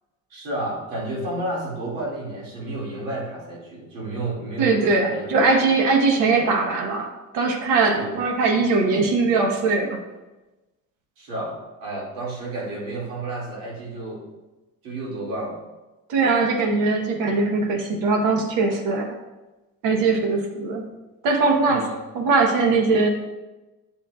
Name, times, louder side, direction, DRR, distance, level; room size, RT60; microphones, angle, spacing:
voice 1, 0.3-5.3 5.7-5.8 7.9-8.1 11.2-14.2 14.8-15.6 21.6-22.0, right 2 dB, 90° right, -4 dB, 2.6 m, -31 dB
voice 2, 4.6-10.0 16.1-19.2 19.8-20.9 21.2-21.9 22.1-23.1, right 3 dB, 70° right, 3 dB, 1.3 m, -21 dB
8.5 x 6.8 x 2.5 m, 1.1 s
cardioid pair, 130°, 33 cm